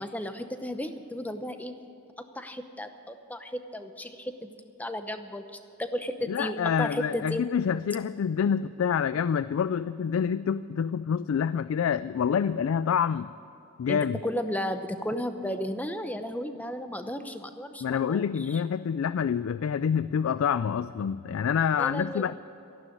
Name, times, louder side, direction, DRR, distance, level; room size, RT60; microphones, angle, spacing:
voice 1, 0.0-1.7 2.4-4.5 4.8-5.4 5.8-7.5 13.9-18.6 21.8-22.3, left 1 dB, 5° left, 8 dB, 0.8 m, -34 dB
voice 2, 6.3-13.3 13.8-14.2 17.8-22.3, left 7 dB, 70° left, 15 dB, 0.3 m, -27 dB
13.0 x 11.5 x 9.5 m, 2.8 s
head